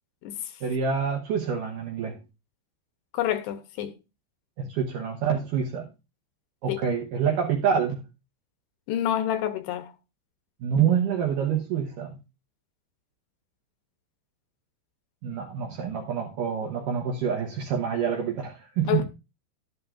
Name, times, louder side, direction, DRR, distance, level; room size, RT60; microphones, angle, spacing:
voice 1, 0.6-2.2 4.6-5.9 6.6-8.0 10.6-12.2 15.2-19.0, right 7 dB, 75° right, 2.0 m, -27 dB
voice 2, 3.1-4.0 6.7-6.8 8.9-9.9 18.9-19.0, left 11 dB, 80° left, 2.7 m, -28 dB
12.0 x 11.0 x 2.4 m
omnidirectional pair, 5.1 m